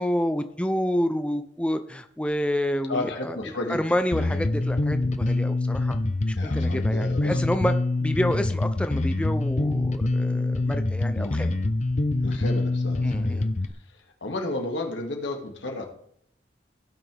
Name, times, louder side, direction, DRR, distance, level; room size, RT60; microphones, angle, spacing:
voice 1, 0.0-6.0 6.3-7.7 8.0-11.5 13.0-13.5, equal, 5° left, 8 dB, 0.5 m, -28 dB
voice 2, 2.8-4.0 6.3-7.4 11.1-11.5 12.2-13.5 13.7-15.9, left 2 dB, 90° left, 2 dB, 2.2 m, -33 dB
Bass guitar, 4.1-13.7, left 2 dB, 40° left, 0.7 m, -25 dB
16.5 x 6.1 x 3.4 m, 0.70 s
head